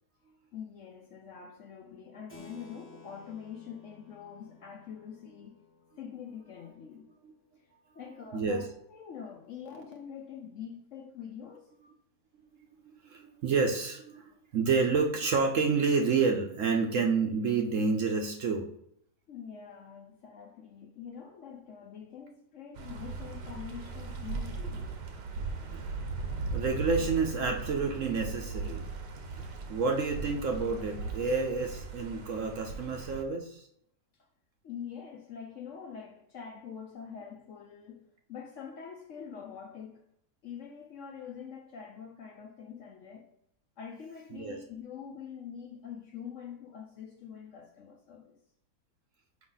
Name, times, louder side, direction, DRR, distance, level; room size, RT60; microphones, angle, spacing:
voice 1, 0.5-5.6 6.0-7.1 7.6-7.7 7.9-11.8 19.3-24.9 34.1-34.3 34.6-40.1 40.4-43.3 43.8-48.4, left 7 dB, 60° left, 0.8 m, -45 dB
Keyboard (musical), 2.3-8.3, left 2 dB, 25° left, 1.5 m, -56 dB
voice 2, 13.0-14.2 14.5-18.7 25.7-26.0 26.5-28.8 29.7-33.7 44.4-44.6, right 4 dB, 60° right, 0.9 m, -29 dB
sound 1, 22.7-33.2, right 4 dB, 80° right, 1.4 m, -38 dB
6.1 x 5.0 x 3.9 m
omnidirectional pair, 1.8 m